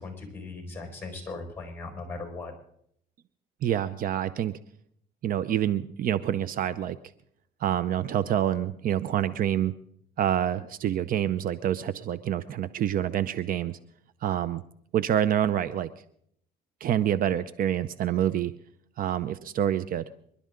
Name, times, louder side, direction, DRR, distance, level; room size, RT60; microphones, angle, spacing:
voice 1, 0.0-2.5, left 3 dB, 15° left, 3 dB, 5.1 m, -38 dB
voice 2, 3.6-4.5 5.2-7.0 7.6-9.7 10.2-13.8 14.2-14.6 14.9-15.9 16.8-18.5 19.0-20.0, right 10 dB, 60° right, 15 dB, 0.6 m, -27 dB
27.0 x 11.5 x 3.8 m, 0.69 s
cardioid pair, 110°, 17 cm